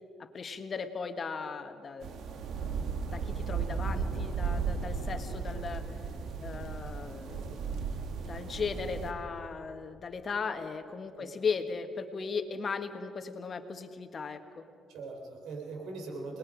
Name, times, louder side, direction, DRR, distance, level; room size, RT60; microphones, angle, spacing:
voice 1, 0.2-2.2 3.1-5.9 6.4-7.7 8.3-14.6, left 5 dB, 45° left, 7 dB, 1.5 m, -37 dB
sound 1, 2.0-9.1, right 5 dB, 75° right, 1.6 m, -35 dB
voice 2, 6.4-6.7 11.2-11.3 14.9-16.4, right 3 dB, 90° right, 1 dB, 4.1 m, -41 dB
26.5 x 20.0 x 5.2 m, 2.4 s
cardioid pair, 90°, 0 cm